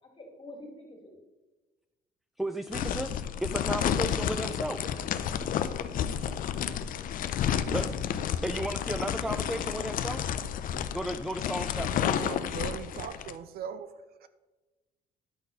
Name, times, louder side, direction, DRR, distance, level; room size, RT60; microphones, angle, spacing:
voice 1, 0.0-1.2, left 1 dB, 30° left, 2.8 m, -49 dB
voice 2, 2.4-4.9 7.7-10.3 10.9-12.2, right 1 dB, ahead, 0.4 m, -34 dB
sound 1, 2.7-13.3, left 9 dB, 55° left, 0.6 m, -31 dB
voice 3, 12.2-14.3, right 8 dB, 65° right, 0.6 m, -40 dB
10.5 x 4.1 x 5.6 m
cardioid pair, 110°, 17 cm